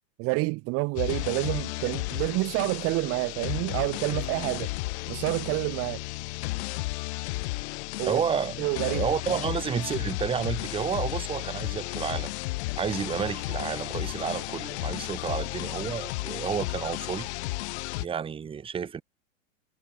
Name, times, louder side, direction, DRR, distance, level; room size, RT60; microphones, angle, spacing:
voice 1, 0.2-4.7 5.1-6.0 8.0-8.2 8.6-9.4, right 27 dB, 35° right, 0.6 m, -28 dB
sound 1, 1.0-18.1, left 22 dB, 55° left, 1.4 m, -33 dB
voice 2, 8.1-8.6 8.9-12.3 12.7-17.3 18.0-19.0, right 7 dB, 15° right, 0.9 m, -30 dB
hypercardioid pair, 110°, 39 cm